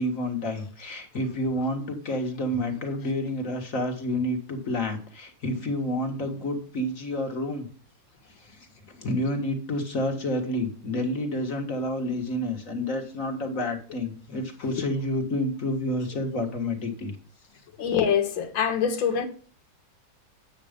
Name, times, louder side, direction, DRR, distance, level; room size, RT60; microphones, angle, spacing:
voice 1, 0.0-7.7 8.4-17.1, left 1 dB, 45° left, 2.1 m, -29 dB
voice 2, 17.8-19.3, left 7 dB, 80° left, 2.2 m, -24 dB
9.4 x 7.5 x 5.1 m
omnidirectional pair, 2.1 m